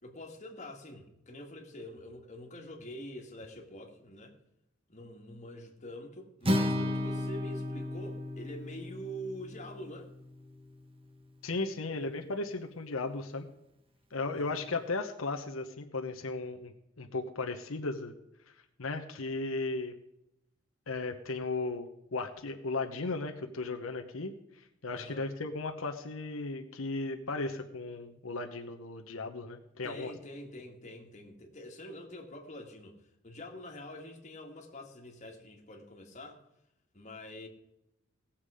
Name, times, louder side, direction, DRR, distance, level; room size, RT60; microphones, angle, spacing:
voice 1, 0.0-4.3 4.9-10.1 14.3-14.7 24.9-25.3 29.8-33.0 33.2-36.4 36.9-37.5, equal, 35° left, 1 dB, 2.0 m, -46 dB
Acoustic guitar, 6.4-10.7, left 1 dB, 25° right, 1.2 m, -34 dB
voice 2, 11.4-13.5 14.1-18.1 18.8-19.9 20.9-30.1, left 3 dB, 90° left, 4 dB, 1.0 m, -36 dB
17.5 x 7.3 x 5.0 m, 0.83 s
head